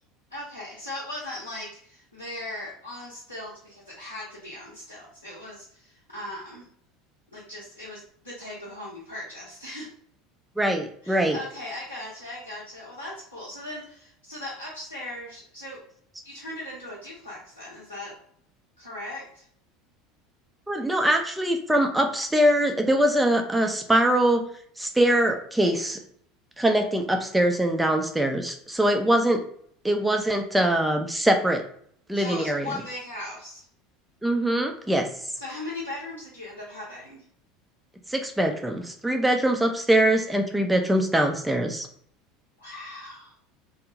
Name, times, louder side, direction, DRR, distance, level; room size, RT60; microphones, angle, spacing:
voice 1, 0.3-6.7 7.3-9.9 11.0-15.8 16.2-18.2 18.8-19.4 32.1-33.7 35.4-37.2 42.6-43.3, left 1 dB, 85° left, -8 dB, 0.7 m, -38 dB
voice 2, 10.6-11.4 20.7-24.4 24.8-26.0 26.6-29.4 29.8-31.6 32.1-32.7 34.2-35.1 38.1-41.9, right 1 dB, 5° right, 4 dB, 0.4 m, -23 dB
2.5 x 2.0 x 2.9 m, 0.62 s
figure-of-eight pair, 70°, 0 cm